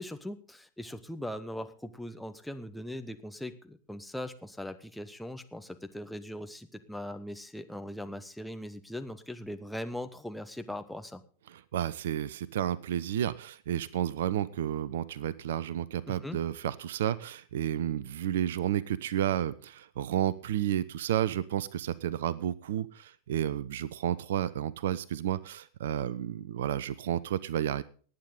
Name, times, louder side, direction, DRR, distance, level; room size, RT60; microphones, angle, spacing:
voice 1, 0.0-11.2 16.1-16.4, left 1 dB, ahead, 7 dB, 1.1 m, -40 dB
voice 2, 11.5-27.8, right 11 dB, 60° right, 20 dB, 0.6 m, -31 dB
19.0 x 9.2 x 3.8 m, 0.40 s
figure-of-eight pair, 90°, 0 cm